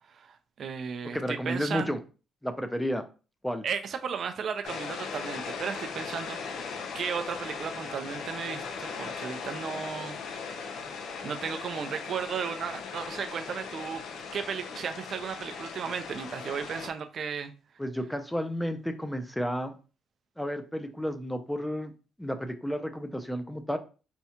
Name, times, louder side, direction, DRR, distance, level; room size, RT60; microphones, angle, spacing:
voice 1, 0.1-1.9 3.6-6.7 6.9-10.2 10.6-10.7 11.2-14.0 14.3-17.5, right 6 dB, 55° right, 0.4 m, -35 dB
voice 2, 1.1-2.0 2.4-3.0 3.4-3.6 17.8-19.7 20.4-21.9 22.2-23.8, equal, 5° left, 0.5 m, -32 dB
sound 1, 4.6-16.9, left 5 dB, 75° left, 0.5 m, -38 dB
4.3 x 2.3 x 2.8 m
cardioid pair, 90°, 0 cm